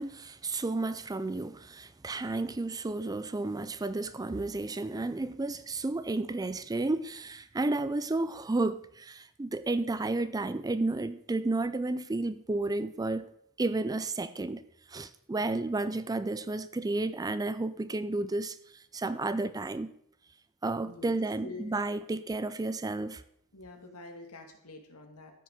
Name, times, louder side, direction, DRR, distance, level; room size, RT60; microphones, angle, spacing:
voice 1, 0.0-13.2 13.6-14.6 14.9-18.6 18.9-19.9 20.6-23.2, right 2 dB, 15° right, 0.4 m, -32 dB
voice 2, 20.8-21.1 21.4-21.7 23.5-25.3, left 3 dB, 75° left, 2.2 m, -46 dB
13.5 x 6.2 x 6.5 m
head